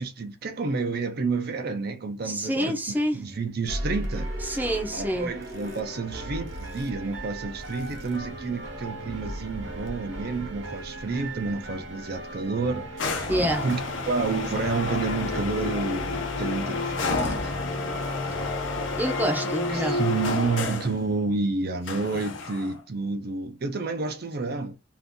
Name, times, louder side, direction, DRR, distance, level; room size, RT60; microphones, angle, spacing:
voice 1, 0.0-13.3 13.6-17.5 19.7-24.8, right 4 dB, 50° right, 0.5 m, -30 dB
voice 2, 2.2-3.2 4.4-5.3 13.3-13.6 19.0-20.0, equal, 10° right, 0.6 m, -27 dB
sound 1, 3.7-15.4, right 1 dB, 75° right, 1.0 m, -37 dB
sound 2, 13.0-21.0 21.9-22.8, left 3 dB, 80° left, 0.7 m, -30 dB
2.6 x 2.5 x 3.6 m
head